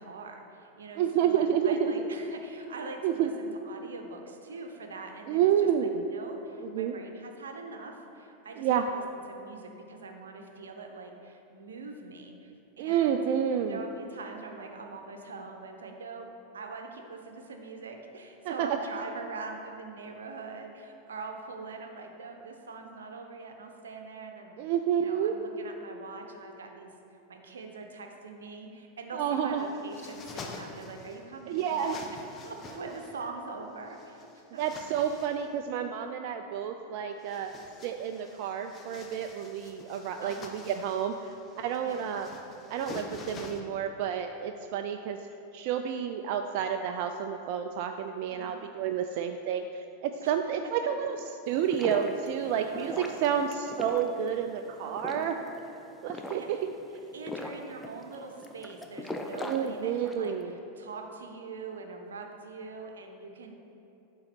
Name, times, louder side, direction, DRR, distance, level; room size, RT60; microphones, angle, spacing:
voice 1, 0.0-5.7 6.0-12.5 12.8-13.2 13.6-16.3 16.5-24.5 24.9-26.9 27.3-32.0 32.4-34.6 35.0-35.3 40.2-40.6 41.8-42.0 48.3-48.6 50.2-50.3 52.4-53.3 54.8-55.5 56.4-56.7 57.1-63.5, right 4 dB, 85° right, 3 dB, 0.7 m, -43 dB
voice 2, 1.0-2.1 3.0-3.3 5.3-6.0 6.6-6.9 8.6-8.9 12.8-13.8 18.4-18.7 24.6-25.3 29.1-29.7 31.5-32.0 34.6-37.5 37.8-42.3 42.7-45.2 45.5-55.4 56.0-56.6 59.4-60.5, right 8 dB, 60° right, 6 dB, 0.3 m, -30 dB
sound 1, 29.5-31.2 31.5-33.2 33.9-35.5 37.1-43.6, left 3 dB, 30° left, 0.8 m, -47 dB
sound 2, 51.5-60.3, left 1 dB, 10° left, 0.6 m, -40 dB
8.8 x 3.8 x 4.4 m, 3.0 s
hypercardioid pair, 105°, 0 cm